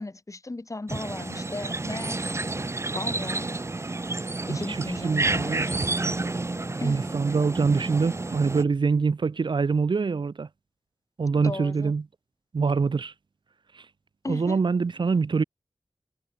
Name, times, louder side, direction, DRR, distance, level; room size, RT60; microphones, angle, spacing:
voice 1, 0.0-2.3 2.9-3.5 4.5-5.6 6.8-7.1 11.4-11.9 14.2-14.6, left 2 dB, 45° left, 4.2 m, -36 dB
sound 1, 0.9-8.6, right 2 dB, 35° right, 0.8 m, -30 dB
voice 2, 5.0-5.8 6.8-10.5 11.2-12.0 12.5-13.1 14.3-15.4, right 4 dB, 85° right, 1.1 m, -24 dB
wide cardioid pair, 65°, 8 cm